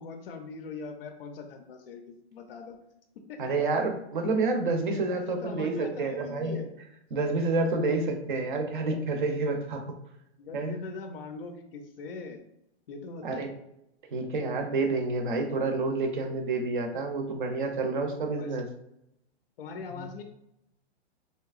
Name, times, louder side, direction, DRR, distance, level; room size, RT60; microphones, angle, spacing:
voice 1, 0.0-2.8 3.3-3.4 4.9-6.7 10.4-12.4 12.9-13.5 18.4-18.6 19.6-20.2, left 4 dB, 55° left, 5 dB, 0.5 m, -41 dB
voice 2, 3.4-6.7 7.1-10.0 10.5-10.8 13.2-13.5 14.1-18.7 19.9-20.1, right 3 dB, 45° right, 5 dB, 0.5 m, -29 dB
3.3 x 2.8 x 2.3 m, 0.80 s
hypercardioid pair, 175°, 34 cm